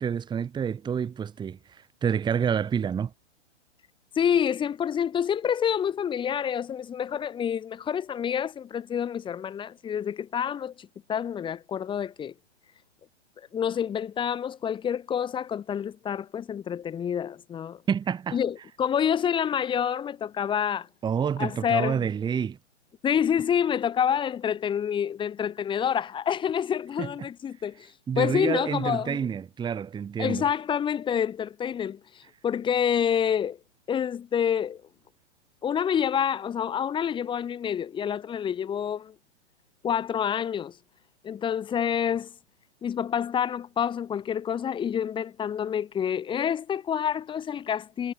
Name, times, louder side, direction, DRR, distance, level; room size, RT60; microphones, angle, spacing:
voice 1, 0.0-3.1 17.9-18.4 21.0-22.6 27.0-27.1 28.1-30.4, right 7 dB, 15° right, 1.7 m, -28 dB
voice 2, 4.1-12.3 13.5-17.8 18.3-20.9 21.4-22.1 23.0-27.9 28.2-29.2 30.2-33.6 33.9-34.8 35.6-39.1 39.8-40.8 41.2-42.3 42.8-48.1, left 8 dB, 15° left, 1.4 m, -28 dB
hypercardioid pair, 125°, 35 cm